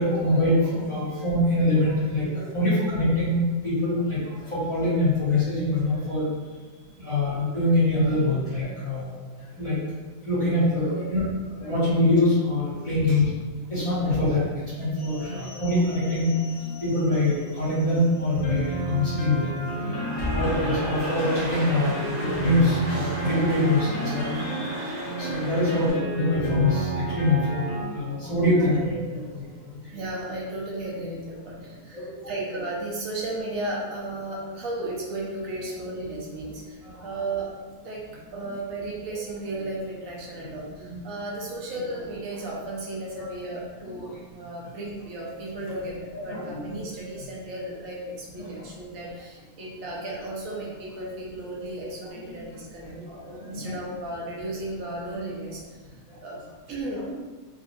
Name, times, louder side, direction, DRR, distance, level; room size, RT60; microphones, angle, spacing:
voice 1, 0.0-6.3 7.0-9.0 9.6-9.7 10.3-11.2 11.6-13.3 13.7-14.4 14.8-16.3 16.6-19.5 20.3-24.4 25.2-27.6 27.9-29.4 31.9-32.0 37.1-37.2 40.8-41.0 45.7-45.8 46.2-46.8 48.4-48.5 51.0-51.1 53.2-53.7, left 1 dB, 25° left, -11 dB, 1.3 m, -24 dB
voice 2, 10.9-11.3 12.9-13.2 14.1-14.2 15.2-15.4 29.9-37.5 37.8-38.0 38.3-52.9 53.4-55.6 55.9-57.0, right 2 dB, 80° right, -4 dB, 1.2 m, -35 dB
sound 1, 15.0-27.8, right 2 dB, 60° left, 1.1 m, -32 dB
Cheering / Applause, 19.6-25.9, equal, 40° right, 1.2 m, -34 dB
3.9 x 2.5 x 2.5 m, 1.3 s
omnidirectional pair, 1.4 m